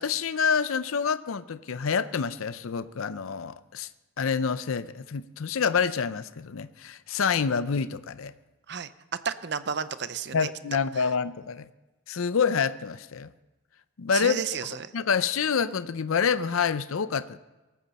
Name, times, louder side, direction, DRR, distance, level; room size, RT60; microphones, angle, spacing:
voice 1, 0.0-3.9 4.2-8.3 10.3-11.7 12.1-13.3 14.0-17.4, left 6 dB, 80° left, 15 dB, 0.5 m, -27 dB
voice 2, 9.2-10.5 14.1-14.9, right 6 dB, 55° right, 13 dB, 0.6 m, -32 dB
18.0 x 14.5 x 4.2 m, 1.1 s
head